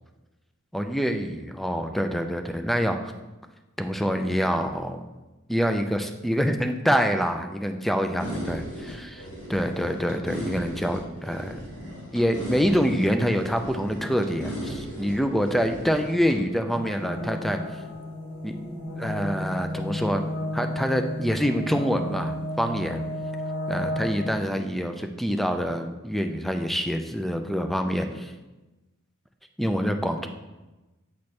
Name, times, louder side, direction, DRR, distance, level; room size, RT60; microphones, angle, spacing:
voice 1, 0.7-3.1 3.8-5.0 5.5-11.6 12.1-17.6 18.4-18.5 19.0-20.2 20.5-23.0 23.7-28.3 29.6-30.3, equal, ahead, 6 dB, 0.3 m, -26 dB
sound 1, 8.2-16.4, equal, 35° left, 1.7 m, -36 dB
sound 2, 16.7-24.4, left 1 dB, 75° left, 1.3 m, -33 dB
8.2 x 4.4 x 3.2 m, 1.1 s
head